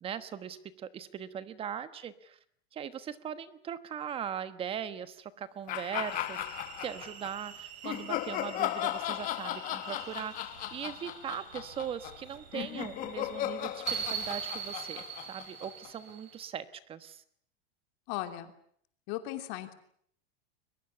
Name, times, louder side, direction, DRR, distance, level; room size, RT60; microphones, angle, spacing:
voice 1, 0.0-2.4 2.7-17.2, right 8 dB, 15° right, 13 dB, 1.2 m, -40 dB
sound 1, 5.7-7.3 7.8-16.1, left 14 dB, 25° left, 1.0 m, -36 dB
sound 2, 6.0-16.4, right 8 dB, 70° right, 5.2 m, -43 dB
voice 2, 18.1-18.5 19.1-19.7, left 14 dB, 40° left, 8 dB, 3.0 m, -37 dB
22.5 x 21.5 x 9.7 m, 0.65 s
supercardioid pair, 175°, 32 cm